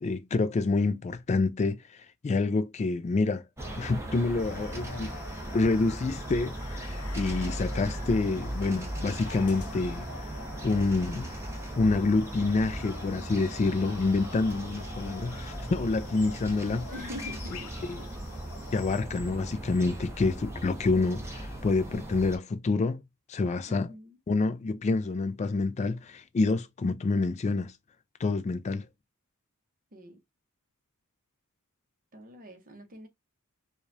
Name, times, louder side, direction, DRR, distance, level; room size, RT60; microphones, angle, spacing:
voice 1, 0.0-3.4 3.7-5.1 5.5-10.3 10.6-11.3 11.8-16.9 17.9-18.0 18.7-23.0 23.3-23.9 24.3-27.7 28.2-28.9, left 3 dB, 30° left, 0.3 m, -27 dB
sound 1, 3.6-22.4, right 1 dB, 10° right, 1.0 m, -38 dB
sound 2, 4.4-19.0, left 5 dB, 80° left, 0.7 m, -47 dB
voice 2, 16.9-17.7 18.0-18.1 23.7-24.2 29.9-30.2 32.1-33.1, left 1 dB, 40° right, 1.0 m, -44 dB
4.8 x 2.3 x 2.6 m
head